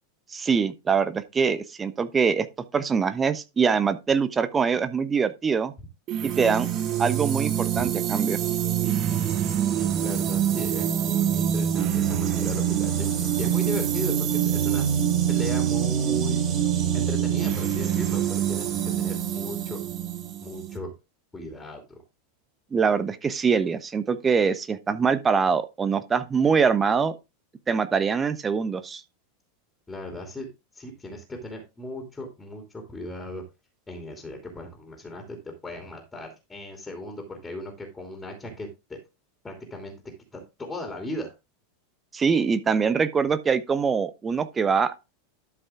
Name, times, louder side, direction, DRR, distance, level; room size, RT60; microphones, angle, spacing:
voice 1, 0.3-2.5 2.7-5.7 6.2-6.7 7.0-8.4 22.7-27.1 27.7-29.0 42.1-44.9, right 6 dB, 20° right, 1.1 m, -23 dB
sound 1, 6.1-20.8, right 9 dB, 35° right, 1.6 m, -25 dB
voice 2, 9.7-13.1 13.4-14.8 15.3-16.4 16.9-19.8 20.4-20.9 21.3-22.0 29.9-30.5 30.7-33.4 33.9-39.0 39.4-39.9 40.3-41.3, left 1 dB, 10° left, 2.8 m, -37 dB
12.5 x 5.5 x 3.6 m
figure-of-eight pair, 85°, 0 cm